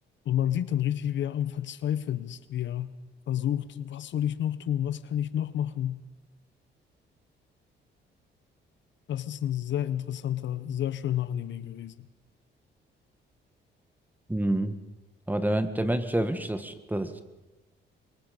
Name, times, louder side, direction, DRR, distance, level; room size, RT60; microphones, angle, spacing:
voice 1, 0.3-2.9 3.3-6.0 9.1-12.1, left 10 dB, 70° left, 0.9 m, -30 dB
voice 2, 14.3-14.7 15.3-17.2, right 1 dB, 10° right, 1.7 m, -28 dB
24.0 x 22.0 x 5.3 m
cardioid pair, 90°, 20 cm